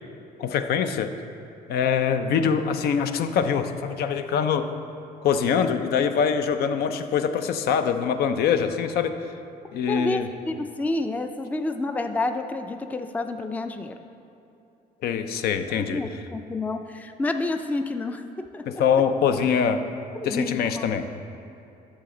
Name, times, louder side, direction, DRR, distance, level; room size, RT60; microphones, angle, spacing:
voice 1, 0.4-1.1 1.7-4.7 5.2-9.2 9.7-10.3 15.0-16.0 18.7-19.8 20.2-21.1, left 7 dB, 70° left, 8 dB, 0.6 m, -24 dB
voice 2, 9.9-10.2 10.5-13.9 15.8-18.7 20.2-20.8, left 2 dB, 10° left, 7 dB, 0.4 m, -29 dB
10.0 x 6.8 x 3.8 m, 2.8 s
cardioid pair, 110°, 17 cm